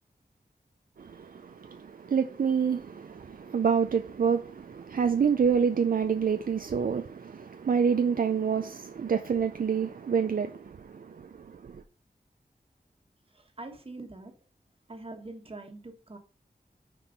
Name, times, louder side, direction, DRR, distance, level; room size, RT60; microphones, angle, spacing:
voice 1, 1.0-11.8, right 6 dB, 65° right, 0.5 m, -28 dB
voice 2, 13.3-14.3 14.9-16.2, right 2 dB, 35° right, 1.4 m, -43 dB
6.1 x 4.5 x 5.2 m
wide cardioid pair, 95°, 16 cm